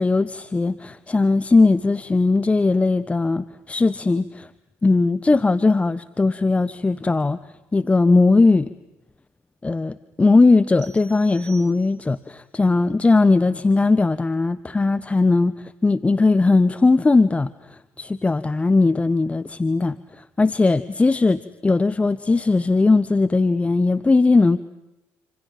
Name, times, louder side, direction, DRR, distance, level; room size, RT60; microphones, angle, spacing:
voice 1, 0.0-4.5 4.8-7.4 7.7-8.7 9.6-24.6, left 3 dB, 20° left, 16 dB, 1.1 m, -19 dB
sound 1, 10.8-12.3, right 7 dB, 80° right, 3.2 m, -48 dB
28.5 x 27.0 x 7.6 m, 0.92 s
hypercardioid pair, 65°, 6 cm